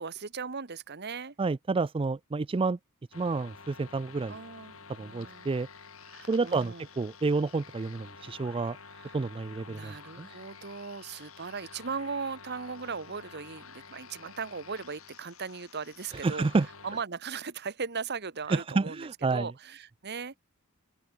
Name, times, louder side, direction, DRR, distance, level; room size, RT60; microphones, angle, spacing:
voice 1, 0.0-1.3 4.3-5.5 6.1-6.9 8.9-9.2 9.7-16.5 16.8-20.4, right 5 dB, 50° right, 1.3 m, -38 dB
voice 2, 1.4-2.8 3.1-4.3 5.0-5.7 6.3-8.8 9.1-10.3 16.2-16.7 18.5-19.5, right 3 dB, 25° right, 0.4 m, -29 dB
sound 1, 3.1-17.0, left 5 dB, 65° left, 4.7 m, -50 dB
open air
head